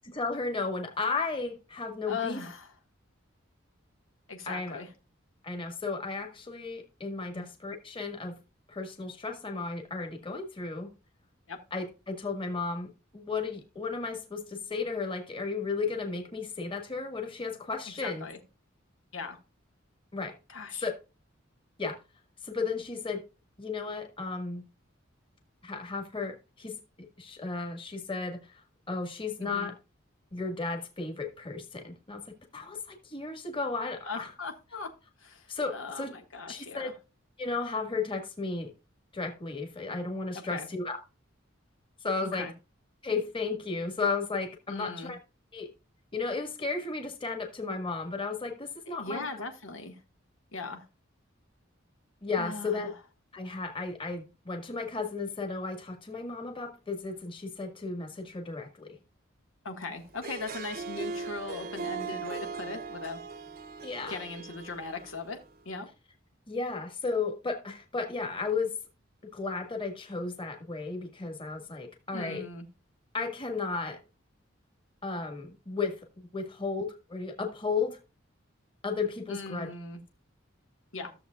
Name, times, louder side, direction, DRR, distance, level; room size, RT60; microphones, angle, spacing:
voice 1, 0.1-2.4 4.5-4.8 5.4-8.4 8.7-10.9 11.7-18.3 20.1-20.4 20.8-21.0 21.8-22.0 22.4-23.2 23.6-24.6 25.6-28.6 28.9-29.7 30.3-34.3 35.5-36.1 36.5-36.9 37.4-38.7 39.1-41.0 42.0-42.5 43.0-45.2 45.5-45.7 46.1-49.3 52.2-52.9 53.3-59.0 63.8-64.2 66.5-68.8 69.3-72.5 73.1-74.0 75.0-76.0 76.3-78.0 78.8-79.7, left 4 dB, 25° left, 1.6 m, -34 dB
voice 2, 2.1-2.7 4.3-4.9 7.3-7.5 11.5-11.6 18.0-18.4 19.1-19.4 20.5-20.9 29.4-29.7 34.0-34.9 35.2-36.9 40.3-40.7 42.2-42.5 44.7-45.1 48.9-50.0 50.5-50.9 52.4-52.9 59.6-63.2 64.1-65.4 65.6-65.9 72.1-72.7 79.3-80.0 80.9-81.1, left 3 dB, 90° left, 1.6 m, -39 dB
Harp, 60.1-65.5, right 4 dB, 50° right, 0.8 m, -39 dB
14.5 x 7.1 x 2.3 m
head